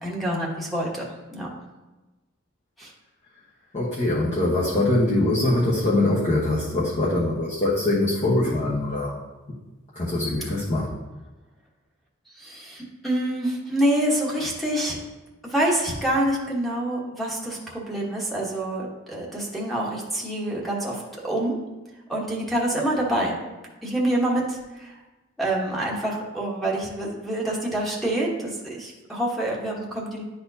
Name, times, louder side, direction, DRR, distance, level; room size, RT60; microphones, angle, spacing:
voice 1, 0.0-1.5 2.8-2.9 12.3-15.0 15.4-21.6 22.1-23.4 23.8-25.0 25.4-30.2, right 1 dB, ahead, -5 dB, 1.2 m, -26 dB
voice 2, 3.7-9.2 9.9-10.9, left 2 dB, 35° left, -6 dB, 1.1 m, -23 dB
11.0 x 4.3 x 2.7 m, 1.1 s
head